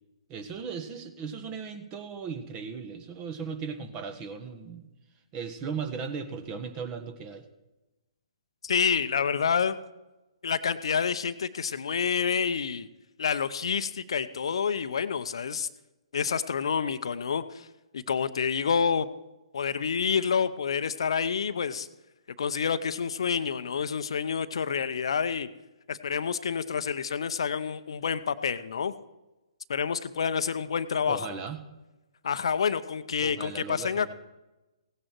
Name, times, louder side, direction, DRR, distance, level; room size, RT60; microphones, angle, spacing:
voice 1, 0.3-4.9 5.3-7.5 31.0-31.7 33.2-34.1, right 6 dB, 25° right, 8 dB, 1.4 m, -37 dB
voice 2, 8.6-9.8 10.4-12.9 13.2-15.7 16.1-17.7 17.9-19.1 19.5-21.9 22.4-25.5 25.9-28.9 29.7-31.3 32.2-34.1, left 6 dB, 65° left, 12 dB, 0.7 m, -28 dB
16.5 x 9.9 x 4.6 m, 1.0 s
figure-of-eight pair, 130°, 3 cm